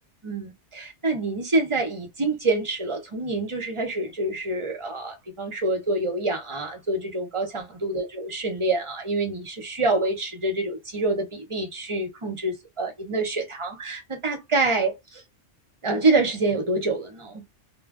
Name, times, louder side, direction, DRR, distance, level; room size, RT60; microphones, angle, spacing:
voice 1, 0.2-15.2 15.8-17.4, right 2 dB, 35° right, 0.6 m, -26 dB
2.2 x 2.0 x 3.4 m
omnidirectional pair, 1.3 m